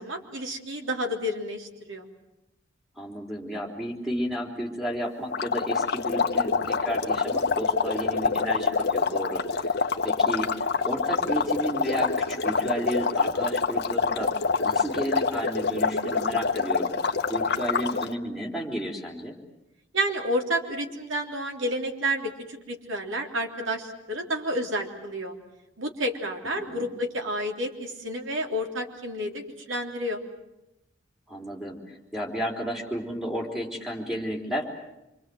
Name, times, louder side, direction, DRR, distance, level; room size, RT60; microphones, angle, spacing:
voice 1, 0.0-2.1 19.9-25.4 25.8-30.2, equal, 85° right, 2 dB, 3.5 m, -30 dB
voice 2, 3.0-9.7 10.0-14.3 14.6-16.9 17.3-19.4 26.6-26.9 31.3-35.0, equal, ahead, -1 dB, 3.7 m, -32 dB
sound 1, 5.3-18.1, left 4 dB, 55° left, 1.1 m, -26 dB
27.0 x 25.0 x 7.8 m, 0.91 s
head